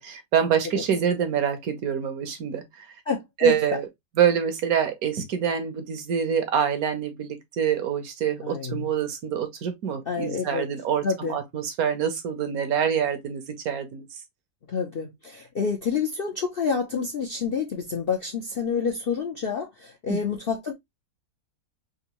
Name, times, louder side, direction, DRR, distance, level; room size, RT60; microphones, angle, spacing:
voice 1, 0.0-2.9 3.4-3.9 4.2-14.2 20.1-20.2, right 8 dB, 65° right, 1.1 m, -26 dB
voice 2, 3.1-3.5 8.4-8.8 10.1-10.6 11.0-11.4 14.7-20.7, left 6 dB, 60° left, 0.6 m, -28 dB
3.8 x 2.6 x 2.9 m
omnidirectional pair, 1.8 m